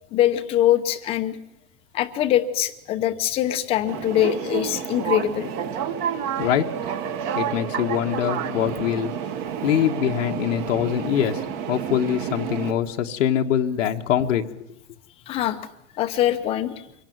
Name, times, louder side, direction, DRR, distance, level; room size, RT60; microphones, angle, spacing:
voice 1, 0.1-1.4 1.9-5.5 15.3-15.6 16.0-16.8, left 12 dB, 15° left, 10 dB, 0.8 m, -23 dB
sound 1, 3.9-12.7, right 8 dB, 25° right, 1.1 m, -29 dB
voice 2, 7.3-9.1 9.6-11.4 11.7-14.4, left 10 dB, 75° left, 3 dB, 1.5 m, -23 dB
25.0 x 17.5 x 9.3 m, 0.83 s
supercardioid pair, 175°, 38 cm